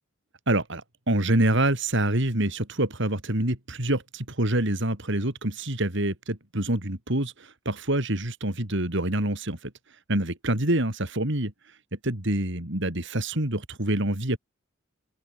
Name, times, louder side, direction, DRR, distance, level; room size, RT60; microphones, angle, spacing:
voice 1, 0.5-9.7 10.1-11.5 12.0-14.4, right 1 dB, 60° right, 4.0 m, -26 dB
open air
head